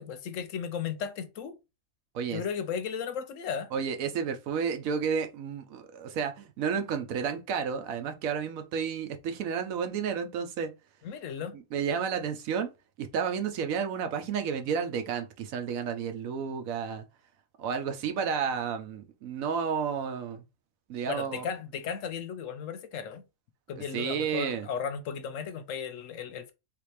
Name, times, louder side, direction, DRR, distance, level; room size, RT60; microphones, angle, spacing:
voice 1, 0.0-1.6 2.3-3.7 11.0-11.5 21.1-23.2 23.7-26.5, left 7 dB, 70° left, 0.9 m, -35 dB
voice 2, 3.7-10.7 11.5-12.7 13.0-17.1 17.6-20.4 20.9-21.5 23.9-24.7, right 6 dB, 75° right, 1.0 m, -31 dB
3.4 x 2.8 x 3.2 m
omnidirectional pair, 1.5 m